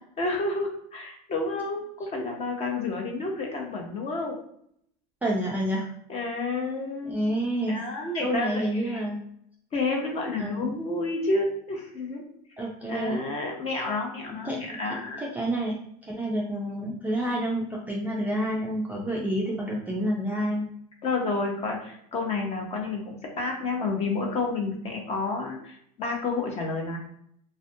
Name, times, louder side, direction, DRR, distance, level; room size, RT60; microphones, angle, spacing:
voice 1, 0.2-4.4 6.1-7.2 7.7-9.0 9.7-12.2 12.9-15.3 21.0-27.0, left 3 dB, 30° left, 1 dB, 0.7 m, -30 dB
voice 2, 5.2-5.9 7.0-7.8 8.2-9.2 10.4-10.7 12.6-13.2 14.4-14.8 15.2-20.6, right 1 dB, 10° right, -4 dB, 0.3 m, -29 dB
2.4 x 2.1 x 2.6 m, 0.69 s
supercardioid pair, 130°, 20 cm